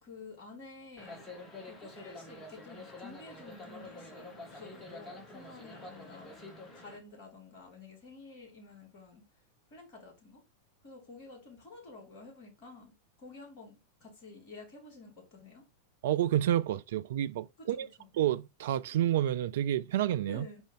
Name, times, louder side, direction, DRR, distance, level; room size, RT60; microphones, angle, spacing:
voice 1, 0.0-1.3 1.6-6.4 6.7-9.2 9.7-10.4 10.8-12.9 13.2-15.7 17.6-17.9 20.3-20.6, left 3 dB, 45° left, 2.2 m, -51 dB
sound 1, 1.0-7.0, left 2 dB, 20° left, 1.8 m, -47 dB
voice 2, 16.0-17.9 18.2-20.5, right 11 dB, 55° right, 0.3 m, -29 dB
5.2 x 5.1 x 3.7 m
figure-of-eight pair, 90°, 0 cm